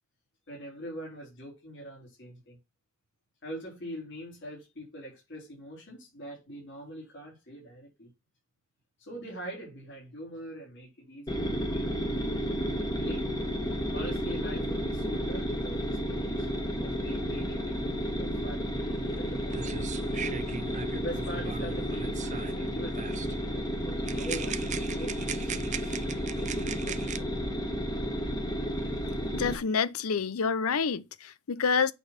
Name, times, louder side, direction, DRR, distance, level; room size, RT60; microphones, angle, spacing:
voice 1, 0.5-2.6 3.4-8.1 9.0-11.9 12.9-13.3 13.9-20.2 20.9-26.0 26.3-27.7, equal, 60° left, 4.1 m, -43 dB
sound 1, 11.3-29.5, equal, 20° left, 1.4 m, -32 dB
sound 2, 19.2-19.3 19.5-22.6 22.9-23.4 24.1-27.2, right 7 dB, 35° right, 0.5 m, -39 dB
voice 2, 29.3-31.9, left 5 dB, 80° left, 0.6 m, -28 dB
8.2 x 4.1 x 5.9 m
head